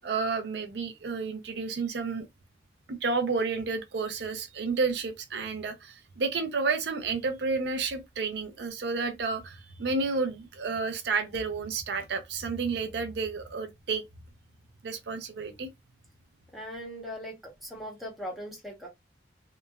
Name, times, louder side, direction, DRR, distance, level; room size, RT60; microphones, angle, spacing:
voice 1, 0.0-2.3 2.9-14.0 14.8-15.7, right 4 dB, 70° right, 0.5 m, -31 dB
voice 2, 16.5-17.3 17.6-18.9, equal, ahead, 0.8 m, -39 dB
2.9 x 2.2 x 2.2 m
head